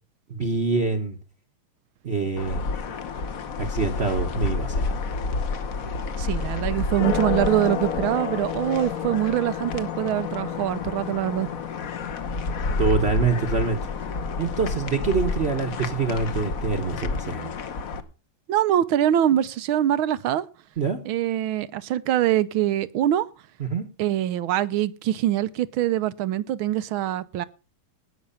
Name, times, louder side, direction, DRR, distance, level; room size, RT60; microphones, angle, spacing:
voice 1, 0.3-1.2 2.0-2.6 3.6-4.9 12.8-13.8 14.4-17.5 20.8-21.0 23.6-23.9, right 4 dB, 40° right, 7 dB, 1.1 m, -25 dB
sound 1, 2.4-18.0, left 4 dB, 50° left, 1.3 m, -29 dB
voice 2, 6.2-11.5 18.5-20.4 21.1-23.3 24.0-27.5, right 12 dB, 85° right, 16 dB, 1.6 m, -24 dB
18.5 x 6.3 x 5.6 m, 0.33 s
omnidirectional pair, 2.2 m